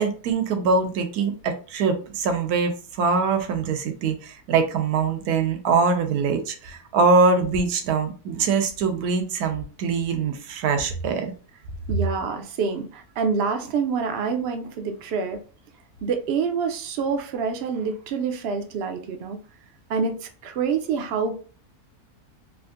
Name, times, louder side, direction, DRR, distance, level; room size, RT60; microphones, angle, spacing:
voice 1, 0.0-11.3, right 4 dB, 85° right, 6 dB, 1.1 m, -23 dB
voice 2, 11.9-15.4 16.0-19.4 19.9-21.3, right 5 dB, 65° right, 6 dB, 0.6 m, -27 dB
3.5 x 2.5 x 2.3 m, 0.38 s
omnidirectional pair, 1.6 m